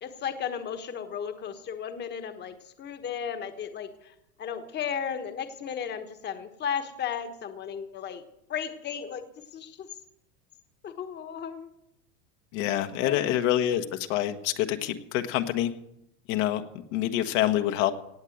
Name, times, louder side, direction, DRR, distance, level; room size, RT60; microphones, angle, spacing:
voice 1, 0.0-8.2 8.5-9.2 9.5-9.9 10.8-11.7 12.9-13.3, left 7 dB, 25° left, 8 dB, 1.3 m, -35 dB
voice 2, 12.5-15.7 16.3-16.6 16.9-17.9, left 12 dB, 60° left, 7 dB, 1.4 m, -26 dB
17.5 x 8.3 x 7.9 m, 0.82 s
supercardioid pair, 135°, 41 cm